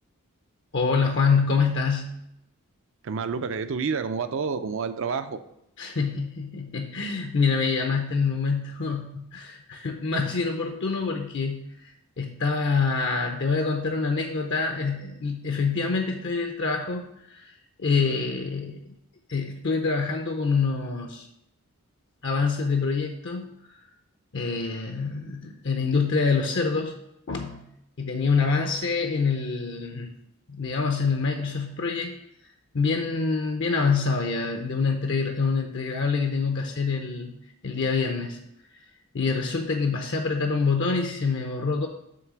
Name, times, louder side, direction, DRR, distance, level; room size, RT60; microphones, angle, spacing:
voice 1, 0.7-2.2 5.8-17.5 17.8-18.8 19.3-21.3 22.2-23.5 24.3-27.0 27.3-27.7 28.0-30.1 30.5-32.2 32.7-37.4 37.6-38.4 38.7-38.8 39.1-41.9, left 4 dB, 55° left, 3 dB, 0.6 m, -26 dB
voice 2, 3.0-5.4, right 5 dB, 60° right, 10 dB, 0.5 m, -29 dB
7.7 x 3.2 x 6.1 m, 0.81 s
head